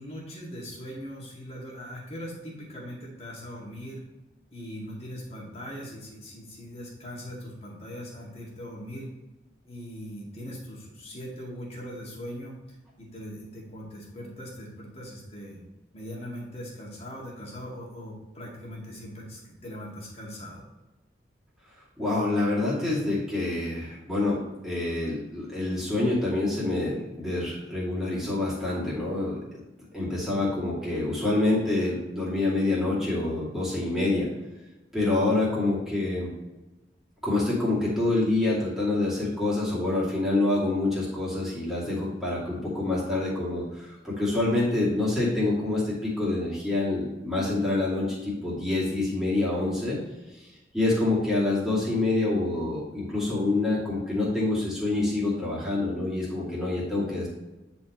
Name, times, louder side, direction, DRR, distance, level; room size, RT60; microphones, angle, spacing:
voice 1, 0.0-4.0 4.5-9.1 9.6-12.5 13.0-15.6 15.9-20.6, equal, 35° left, -4 dB, 2.1 m, -40 dB
voice 2, 22.0-29.4 29.9-34.3 34.9-36.3 37.2-50.0 50.3-57.3, left 2 dB, ahead, -8 dB, 2.5 m, -27 dB
9.8 x 4.3 x 3.1 m, 1.1 s
head